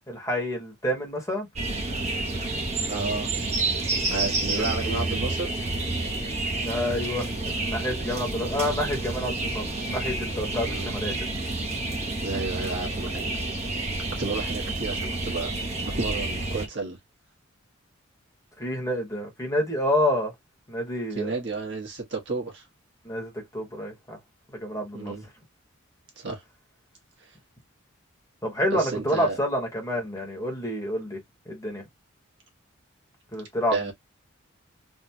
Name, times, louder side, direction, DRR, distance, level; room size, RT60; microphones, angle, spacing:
voice 1, 0.1-1.5 4.6-5.0 6.6-11.1 18.6-20.3 20.7-21.3 23.0-24.2 24.5-25.1 28.4-31.2 31.4-31.8 33.3-33.9, equal, 15° left, 1.2 m, -28 dB
sound 1, 1.6-16.7, right 2 dB, 30° right, 1.0 m, -29 dB
voice 2, 2.8-3.3 4.1-5.5 10.5-10.9 12.2-13.4 14.1-15.5 15.8-17.0 21.1-22.7 24.9-25.2 26.2-26.4 27.2-27.4 28.7-29.4 33.7-33.9, right 3 dB, 60° right, 1.5 m, -32 dB
3.4 x 2.4 x 2.8 m
head